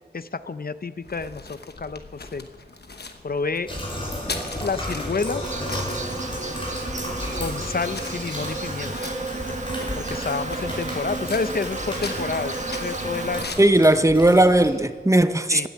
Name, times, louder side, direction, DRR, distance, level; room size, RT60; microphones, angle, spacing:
voice 1, 0.1-2.5 3.2-3.7 4.6-5.4 7.4-8.9 10.0-13.5 15.5-15.7, left 4 dB, 65° left, 13 dB, 0.6 m, -29 dB
sound 1, 1.0-13.7, left 3 dB, 85° left, 1.1 m, -40 dB
sound 2, 3.7-14.7, left 1 dB, 30° left, 5.0 m, -34 dB
Insect, 5.4-13.4, right 3 dB, 45° right, 1.4 m, -32 dB
voice 2, 13.6-15.7, right 1 dB, 20° right, 11 dB, 0.8 m, -17 dB
15.5 x 10.0 x 8.3 m, 1.5 s
wide cardioid pair, 60°, 16 cm